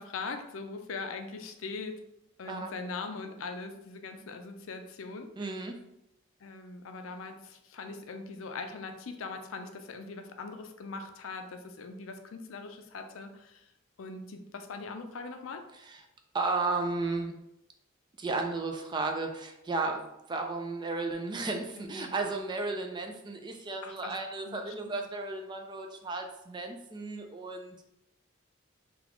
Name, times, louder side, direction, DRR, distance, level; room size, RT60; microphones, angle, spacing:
voice 1, 0.0-2.0 2.4-5.3 6.4-13.7 14.0-15.6 21.7-22.1 23.8-24.2 24.5-25.1, left 4 dB, 70° left, 7 dB, 0.4 m, -41 dB
voice 2, 5.4-5.8 15.9-16.0 16.3-17.4 18.2-27.8, right 3 dB, 20° right, 4 dB, 0.3 m, -34 dB
3.9 x 2.3 x 3.0 m, 0.84 s
head